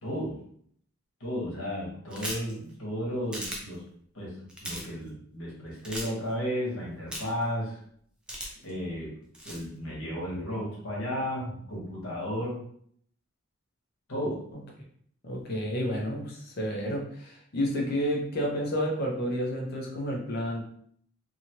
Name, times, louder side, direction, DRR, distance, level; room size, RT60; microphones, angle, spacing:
voice 1, 0.0-0.4 1.2-3.8 4.1-7.8 8.6-9.1 9.4-12.6 14.1-14.4, equal, 75° left, -4 dB, 1.2 m, -33 dB
sound 1, 2.1-2.5 3.3-3.6 4.5-4.9 5.8-6.1 7.1-7.4 8.3-8.7 9.3-9.6, right 1 dB, 5° right, 0.5 m, -36 dB
voice 2, 15.2-20.6, equal, 50° left, -1 dB, 0.7 m, -30 dB
2.7 x 2.5 x 2.9 m, 0.63 s
head